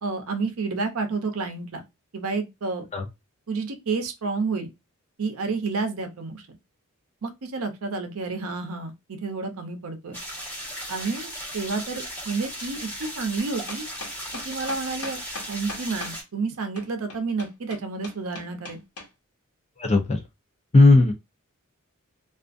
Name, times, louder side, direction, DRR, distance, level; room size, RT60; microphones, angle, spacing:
voice 1, 0.0-1.8 2.1-2.9 3.5-4.7 5.2-6.4 7.2-10.2 10.9-13.9 14.4-18.8, right 4 dB, 75° right, 0.6 m, -30 dB
sound 1, 10.1-16.2, equal, 10° left, 1.2 m, -36 dB
sound 2, 13.4-16.2 16.8-19.1, left 2 dB, 85° left, 1.0 m, -39 dB
voice 2, 19.8-20.2 20.7-21.1, left 2 dB, 30° left, 0.5 m, -16 dB
2.5 x 2.4 x 2.5 m
head